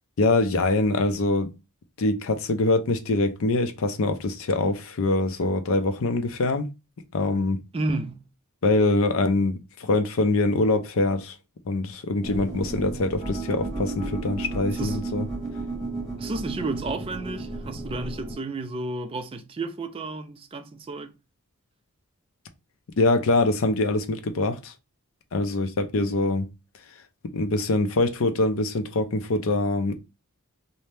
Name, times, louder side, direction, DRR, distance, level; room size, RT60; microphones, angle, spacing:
voice 1, 0.2-1.5 2.0-6.7 7.1-7.6 8.6-11.4 11.7-15.3 23.0-24.7 25.3-26.5 27.3-30.0, left 2 dB, 65° left, 0.5 m, -24 dB
voice 2, 7.7-8.2 14.8-15.0 16.2-21.1, right 2 dB, 25° right, 0.3 m, -32 dB
sound 1, 12.2-18.3, right 2 dB, ahead, 1.2 m, -33 dB
2.7 x 2.1 x 3.2 m
head